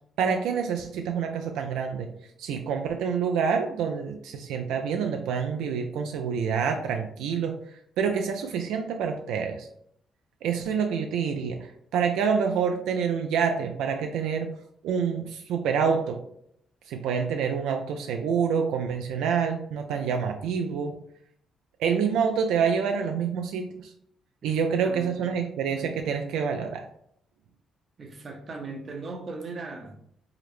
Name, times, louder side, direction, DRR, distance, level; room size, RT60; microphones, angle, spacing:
voice 1, 0.2-2.1 2.4-7.6 8.0-9.7 10.4-14.6 14.8-16.2 16.9-21.0 21.8-23.9 24.4-26.9, right 6 dB, 90° right, 0.3 m, -27 dB
voice 2, 24.4-25.4 28.0-30.0, right 3 dB, 45° right, 0.7 m, -39 dB
4.8 x 2.0 x 3.0 m
cardioid pair, 90°, 0 cm